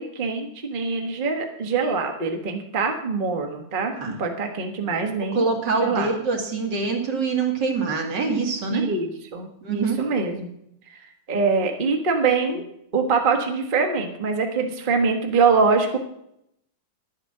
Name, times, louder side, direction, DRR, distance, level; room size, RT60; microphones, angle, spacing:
voice 1, 0.0-3.9 4.2-5.4 5.8-6.1 8.7-10.5 10.9-11.0 11.3-12.6 12.9-16.0, right 4 dB, 30° right, 3 dB, 1.3 m, -24 dB
voice 2, 5.3-8.9 9.6-10.0, right 4 dB, 70° right, 1 dB, 2.6 m, -25 dB
11.0 x 8.2 x 6.5 m, 0.76 s
omnidirectional pair, 2.0 m